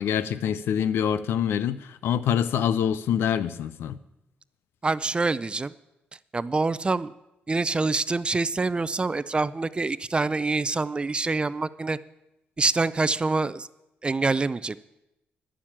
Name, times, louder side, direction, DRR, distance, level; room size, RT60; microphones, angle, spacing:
voice 1, 0.0-4.0, left 9 dB, 80° left, 0.6 m, -25 dB
voice 2, 4.8-5.7 6.3-7.1 7.5-12.0 12.6-13.7 14.0-14.8, right 3 dB, 25° right, 0.4 m, -26 dB
11.5 x 7.3 x 8.7 m
cardioid pair, 75°, 4 cm